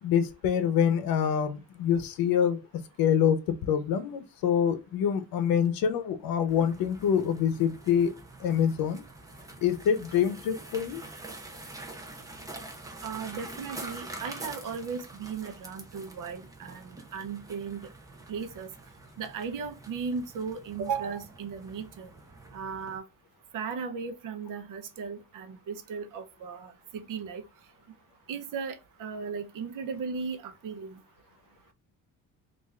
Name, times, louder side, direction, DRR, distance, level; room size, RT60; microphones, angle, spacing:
voice 1, 0.0-2.6 3.0-8.1 8.4-9.0 9.6-11.0, left 8 dB, 75° left, 0.7 m, -26 dB
sound 1, 6.5-23.0, right 2 dB, 10° right, 0.5 m, -46 dB
voice 2, 13.0-17.9 18.3-18.7 19.2-22.1 22.5-23.0 23.5-27.4 28.3-31.0, right 6 dB, 60° right, 0.7 m, -36 dB
3.5 x 2.5 x 3.2 m
cardioid pair, 170°, 35 cm